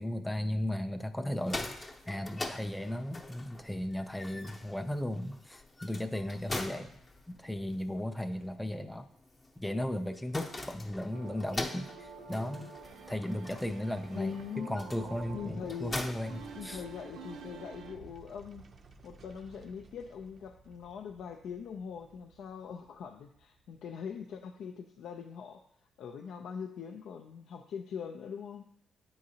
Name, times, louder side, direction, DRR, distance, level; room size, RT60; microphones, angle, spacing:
voice 1, 0.0-6.9 7.3-9.1 9.6-12.7 13.1-16.8, left 1 dB, 5° left, 7 dB, 0.4 m, -36 dB
sound 1, 1.2-17.2, left 2 dB, 25° left, 0.7 m, -44 dB
sound 2, 11.1-18.0, right 5 dB, 85° right, 0.6 m, -49 dB
sound 3, 11.9-24.6 25.0-25.1, right 4 dB, 45° right, 0.5 m, -58 dB
voice 2, 14.1-14.8 15.3-16.0 16.5-18.7 19.0-25.6 26.0-28.7, left 7 dB, 70° left, 4 dB, 0.4 m, -42 dB
9.4 x 3.8 x 2.7 m, 0.75 s
cardioid pair, 90°, 0 cm